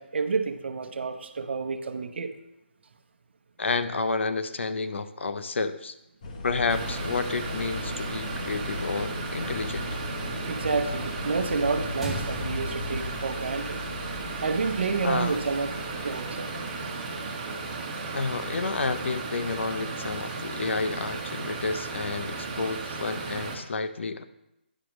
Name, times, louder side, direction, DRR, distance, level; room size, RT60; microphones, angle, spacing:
voice 1, 0.0-2.3 10.5-13.8 14.1-16.5 16.8-17.4, right 4 dB, 65° right, 7 dB, 0.8 m, -30 dB
voice 2, 3.6-6.0 6.4-9.9 15.0-15.4 18.1-24.2, left 4 dB, 80° left, 11 dB, 0.6 m, -30 dB
sound 1, 6.2-13.2, left 2 dB, 35° left, 0.9 m, -37 dB
sound 2, 6.7-23.5, right 3 dB, 25° right, 1.3 m, -35 dB
sound 3, 12.0-16.6, left 1 dB, 5° right, 0.5 m, -40 dB
9.9 x 6.1 x 3.0 m, 0.86 s
hypercardioid pair, 165°, 6 cm